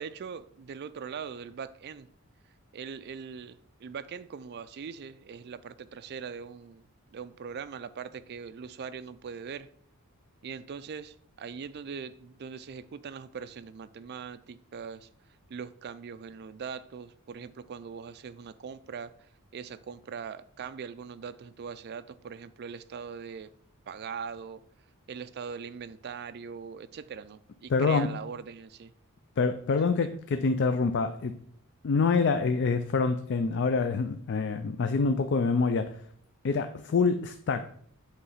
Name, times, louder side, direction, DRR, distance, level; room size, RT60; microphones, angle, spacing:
voice 1, 0.0-2.1 2.7-6.9 7.1-9.7 10.4-15.1 15.5-23.5 23.9-24.6 25.1-28.9 29.7-30.2, right 6 dB, 45° right, 0.3 m, -41 dB
voice 2, 27.7-28.2 29.4-31.4 31.8-36.0 36.4-37.7, left 4 dB, 50° left, 0.4 m, -26 dB
8.2 x 3.2 x 5.6 m
head